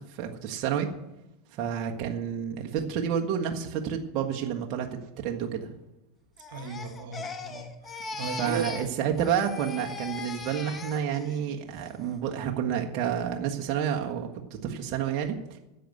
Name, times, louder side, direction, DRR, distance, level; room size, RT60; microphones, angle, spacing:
voice 1, 0.1-0.9 1.5-5.7 8.1-15.6, right 8 dB, 50° right, 1 dB, 1.5 m, -30 dB
Crying sobbing, 6.4-8.9 9.2-11.4 11.8-12.2, left 4 dB, 25° left, 1.4 m, -40 dB
voice 2, 6.5-8.8, right 5 dB, 75° right, 6 dB, 1.6 m, -36 dB
10.0 x 7.8 x 9.2 m, 0.95 s
hypercardioid pair, 95°, 0 cm